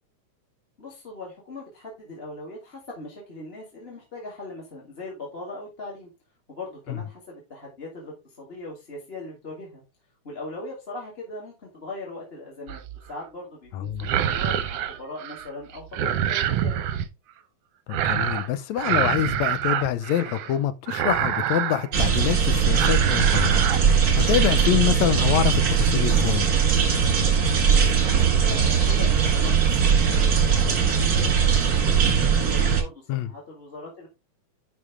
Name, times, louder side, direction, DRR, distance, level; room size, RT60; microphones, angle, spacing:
voice 1, 0.8-6.1 6.5-9.8 10.2-12.8 13.1-17.0 27.7-34.1, left 2 dB, 20° left, 2.1 m, -40 dB
sound 1, 12.7-13.1 13.9-15.5 15.7-17.1 17.9-18.5 18.8-20.6 20.9-21.9 22.2-22.4 22.7-23.8 24.2-24.6, right 10 dB, 70° right, 1.5 m, -26 dB
voice 2, 13.7-14.1 17.9-26.5 33.1-33.3, left 11 dB, 75° left, 2.0 m, -26 dB
sound 2, 21.9-32.8, right 6 dB, 40° right, 1.6 m, -20 dB
11.0 x 5.1 x 3.5 m
omnidirectional pair, 3.5 m